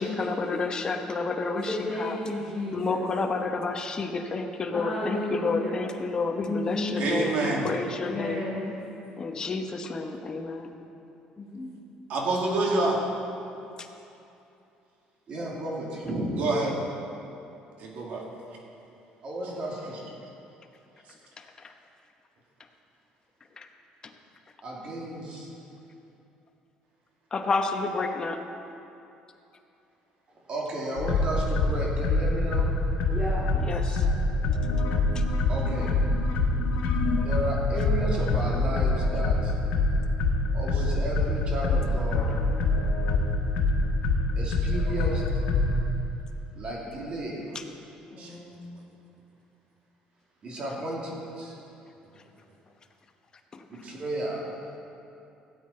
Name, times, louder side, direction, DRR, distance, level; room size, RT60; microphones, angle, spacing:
voice 1, 0.0-2.2 2.7-8.4 9.2-10.7 21.4-21.7 23.6-23.7 24.0-24.1 27.3-28.4 33.5-34.1 35.1-35.2 47.5-47.6 53.5-53.9, left 3 dB, 30° left, 5 dB, 1.0 m, -30 dB
voice 2, 1.5-3.0 4.7-5.7 6.4-7.6 8.0-8.7 11.4-11.7 33.1-33.5 48.1-48.5, left 1 dB, ahead, -10 dB, 2.3 m, -33 dB
voice 3, 7.0-7.7 12.1-13.0 16.4-16.7 17.8-18.2 33.9-34.0 40.7-40.8 48.2-48.5 53.8-53.9, right 2 dB, 60° right, -2 dB, 2.4 m, -27 dB
voice 4, 15.3-16.4 19.2-20.0 24.6-25.5 30.5-32.7 35.5-35.9 37.2-39.5 40.5-42.3 44.4-45.3 46.5-47.4 50.4-51.5 53.7-54.4, right 1 dB, 40° right, -3 dB, 2.7 m, -33 dB
sound 1, 31.0-45.8, left 2 dB, 85° left, 1.4 m, -25 dB
17.0 x 8.5 x 4.4 m, 2.8 s
cardioid pair, 135°, 3 cm